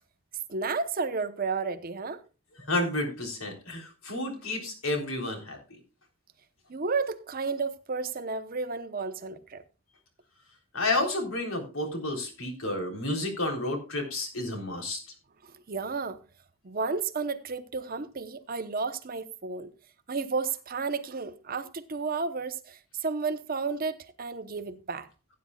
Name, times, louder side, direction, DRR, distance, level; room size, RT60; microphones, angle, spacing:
voice 1, 0.5-2.2 6.7-9.6 15.4-16.2 16.6-19.7 20.1-25.1, right 4 dB, 45° right, 0.9 m, -32 dB
voice 2, 2.7-5.6 10.7-15.0, left 2 dB, 90° left, 3.7 m, -31 dB
17.0 x 9.6 x 2.4 m
head